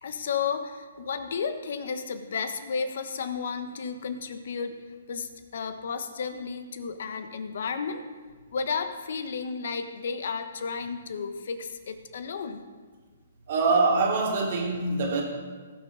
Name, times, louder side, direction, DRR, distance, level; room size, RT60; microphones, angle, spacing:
voice 1, 0.0-4.8 5.1-8.0 8.5-12.6, left 5 dB, 65° left, 8 dB, 1.1 m, -33 dB
voice 2, 13.5-15.2, right 3 dB, 55° right, -1 dB, 2.7 m, -24 dB
18.0 x 6.2 x 4.0 m, 1.5 s
hypercardioid pair, 140°, 0 cm